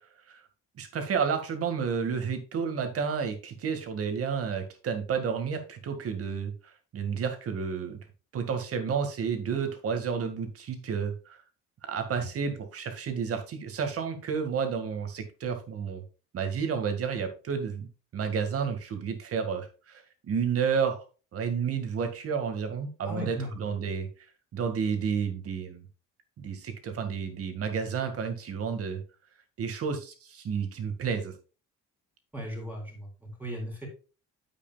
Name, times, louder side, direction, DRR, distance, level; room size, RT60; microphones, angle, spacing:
voice 1, 0.8-6.5 6.9-8.0 8.3-11.4 11.9-16.0 16.3-17.9 18.1-21.0 21.3-24.1 24.5-25.9 26.4-29.0 29.6-31.3, right 6 dB, 45° right, 7 dB, 2.1 m, -31 dB
voice 2, 23.1-23.7 32.3-33.9, equal, 5° right, 0 dB, 3.8 m, -37 dB
9.2 x 8.3 x 2.4 m, 0.34 s
cardioid pair, 140°, 32 cm